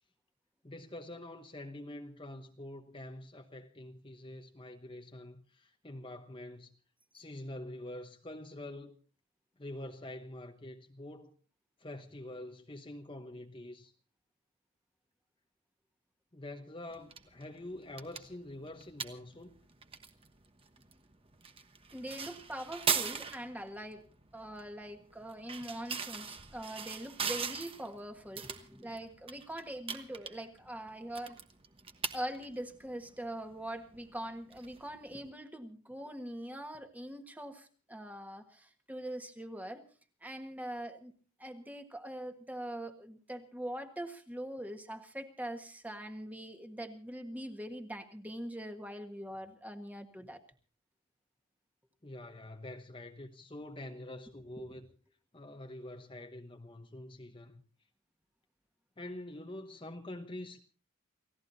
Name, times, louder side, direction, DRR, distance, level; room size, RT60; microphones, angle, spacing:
voice 1, 0.6-6.7 7.1-9.0 9.6-11.3 11.8-13.9 16.3-19.5 52.0-54.9 55.3-57.6 59.0-60.6, left 1 dB, 20° left, 1.0 m, -46 dB
sound 1, 16.9-35.3, right 6 dB, 25° right, 1.1 m, -41 dB
voice 2, 21.9-24.0 24.3-31.4 32.1-39.8 40.2-41.1 41.4-50.4 54.6-54.7, right 1 dB, 5° right, 1.5 m, -43 dB
29.5 x 16.5 x 2.8 m
head